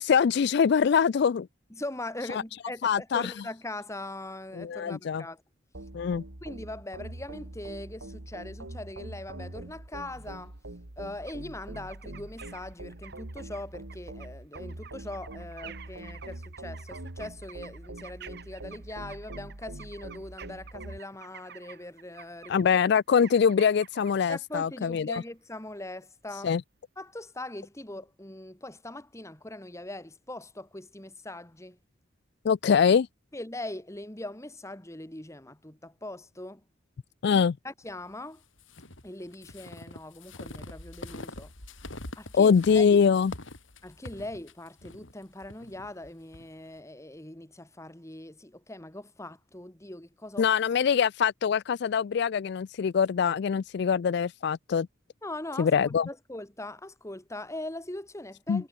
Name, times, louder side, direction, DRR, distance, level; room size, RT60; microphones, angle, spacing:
voice 1, 0.0-1.5 2.8-3.3 4.6-5.2 5.9-6.2 22.5-25.2 26.4-26.6 32.4-33.1 37.2-37.5 42.3-43.3 50.4-54.9 55.6-56.1 58.5-58.6, left 6 dB, 60° left, 0.3 m, -23 dB
voice 2, 1.7-5.4 6.4-10.5 11.0-22.7 24.3-26.5 27.0-31.8 33.3-36.6 37.3-38.4 39.0-41.5 42.2-43.0 43.8-50.5 55.2-58.7, left 1 dB, 15° left, 2.0 m, -41 dB
sound 1, 5.7-21.0, right 1 dB, 80° right, 2.1 m, -43 dB
sound 2, 10.1-10.7 11.3-11.4 11.6-24.4 25.1-25.3, right 8 dB, 55° right, 1.3 m, -50 dB
sound 3, 38.6-46.5, left 2 dB, 90° left, 5.2 m, -44 dB
head